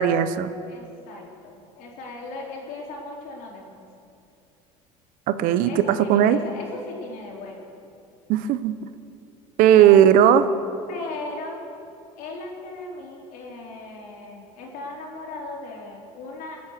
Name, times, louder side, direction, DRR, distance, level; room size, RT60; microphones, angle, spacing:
voice 1, 0.0-0.5 5.3-6.4 8.3-8.8 9.6-10.4, right 10 dB, 65° right, 13 dB, 0.8 m, -17 dB
voice 2, 0.6-3.8 5.6-7.7 9.7-10.0 10.9-11.6 12.2-16.6, left 2 dB, 65° left, -1 dB, 4.1 m, -37 dB
20.5 x 9.5 x 6.6 m, 2.6 s
supercardioid pair, 95°, 15 cm